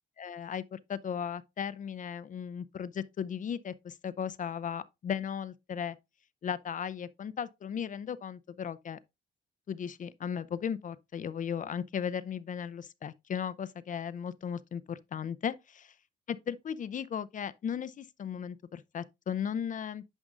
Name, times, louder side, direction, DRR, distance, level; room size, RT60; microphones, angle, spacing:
voice 1, 0.2-6.0 6.4-9.0 9.7-15.9 16.3-20.0, left 8 dB, 40° left, 0.4 m, -36 dB
9.8 x 5.2 x 2.4 m
cardioid pair, 90°, 20 cm